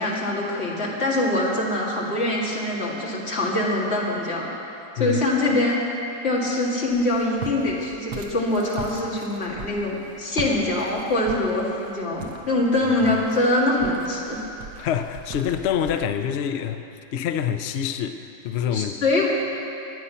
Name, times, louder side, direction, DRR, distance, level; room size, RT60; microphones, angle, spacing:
voice 1, 0.0-4.5 5.0-5.8 6.2-14.5 18.7-19.3, left 2 dB, 40° left, -4 dB, 2.3 m, -24 dB
voice 2, 4.9-5.2 14.8-16.9 17.1-19.0, left 9 dB, 70° left, 8 dB, 0.6 m, -26 dB
Walk footsteps, 6.9-16.1, right 4 dB, 75° right, 1.6 m, -40 dB
22.0 x 8.2 x 5.7 m, 2.8 s
omnidirectional pair, 1.8 m